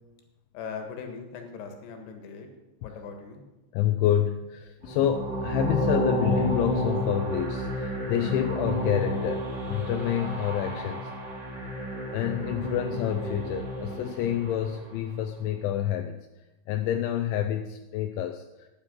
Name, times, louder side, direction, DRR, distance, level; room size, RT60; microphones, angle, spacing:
voice 1, 0.5-2.5 2.8-3.4, left 5 dB, 65° left, 5 dB, 3.3 m, -40 dB
voice 2, 3.7-11.1 12.1-16.2 16.7-18.4, left 11 dB, 80° left, 6 dB, 2.8 m, -28 dB
sound 1, 4.8-14.9, equal, 20° right, 2.0 m, -31 dB
15.0 x 9.7 x 5.5 m, 1.0 s
omnidirectional pair, 5.8 m